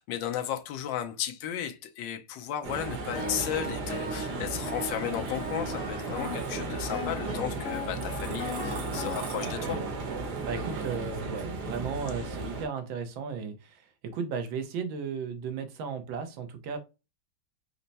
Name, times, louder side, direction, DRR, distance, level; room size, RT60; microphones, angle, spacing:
voice 1, 0.0-9.8, left 10 dB, 70° left, 1.2 m, -34 dB
sound 1, 2.6-12.7, right 4 dB, 55° right, 1.5 m, -35 dB
sound 2, 3.1-9.2, left 2 dB, 40° left, 1.2 m, -38 dB
voice 2, 10.4-16.8, right 5 dB, 70° right, 1.5 m, -35 dB
4.5 x 2.1 x 4.0 m
omnidirectional pair, 2.3 m